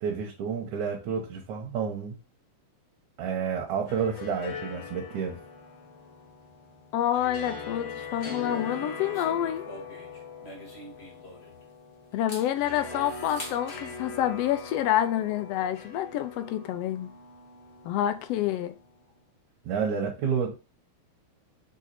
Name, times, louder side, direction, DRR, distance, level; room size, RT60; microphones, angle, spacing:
voice 1, 0.0-2.2 3.2-5.4 19.7-20.6, right 6 dB, 80° right, 2.5 m, -30 dB
sound 1, 3.7-18.9, left 4 dB, 50° left, 2.3 m, -42 dB
voice 2, 6.9-9.6 12.1-17.1 17.8-18.8, left 11 dB, 75° left, 1.5 m, -28 dB
sound 2, 8.4-11.7 12.1-13.8, left 1 dB, 30° left, 1.2 m, -45 dB
6.4 x 3.6 x 4.2 m
omnidirectional pair, 3.3 m